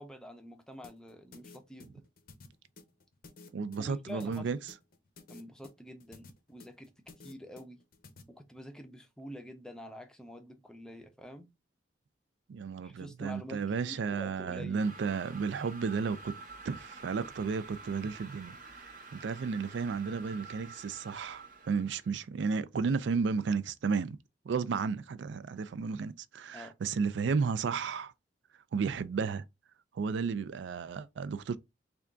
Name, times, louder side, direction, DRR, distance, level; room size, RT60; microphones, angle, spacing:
voice 1, 0.0-2.0 3.8-4.6 5.3-6.9 7.2-7.8 8.3-11.5 12.8-14.9 26.5-26.7, equal, 5° left, 0.4 m, -47 dB
sound 1, 0.8-8.2, left 3 dB, 50° left, 0.5 m, -53 dB
voice 2, 3.5-4.6 12.5-16.3 16.6-24.2 24.5-28.1 28.7-29.4 29.9-31.6, right 5 dB, 75° right, 0.4 m, -33 dB
sound 2, 14.8-22.1, right 3 dB, 45° right, 0.8 m, -49 dB
3.5 x 2.3 x 3.7 m
head